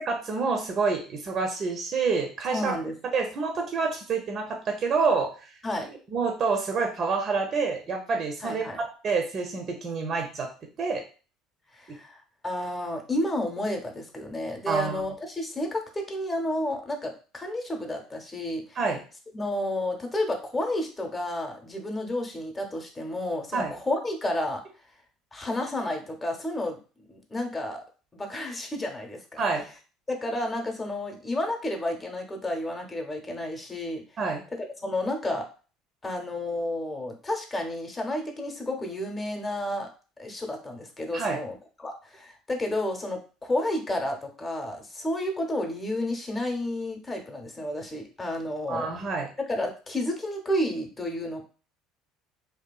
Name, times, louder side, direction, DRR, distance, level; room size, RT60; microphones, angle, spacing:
voice 1, 0.1-2.7 3.1-5.5 6.1-8.7 9.0-10.5 10.8-11.0 14.7-15.0 18.8-19.0 23.5-23.7 29.4-29.6 34.2-34.4 41.1-41.4 48.7-49.3, right 4 dB, 45° right, 3 dB, 0.5 m, -27 dB
voice 2, 2.5-2.9 5.6-5.9 8.4-8.8 11.7-18.8 19.3-24.6 25.3-26.8 27.1-27.8 28.1-29.4 30.1-34.0 34.8-35.5 36.0-39.9 40.2-48.9 49.5-51.4, left 1 dB, 25° left, 3 dB, 0.7 m, -31 dB
2.7 x 2.3 x 2.3 m, 0.36 s
hypercardioid pair, 70°, 0 cm